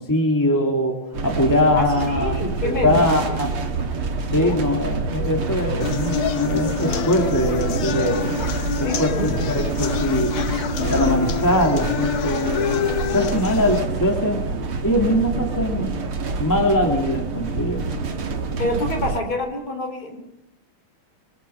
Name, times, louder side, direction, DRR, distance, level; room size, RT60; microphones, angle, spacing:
voice 1, 0.0-3.5 4.3-8.2 8.8-10.4 10.9-12.7 13.1-14.4 14.8-16.0 16.4-17.8, left 1 dB, 10° left, 2 dB, 2.6 m, -22 dB
sound 1, 1.1-19.2, right 4 dB, 85° right, 2.6 m, -27 dB
voice 2, 1.7-3.4 4.3-4.6 8.7-9.3 18.6-20.2, left 1 dB, 45° left, 3 dB, 5.0 m, -27 dB
sound 2, 5.8-13.8, left 8 dB, 80° left, 2.0 m, -27 dB
25.5 x 23.5 x 5.8 m, 0.80 s
omnidirectional pair, 2.3 m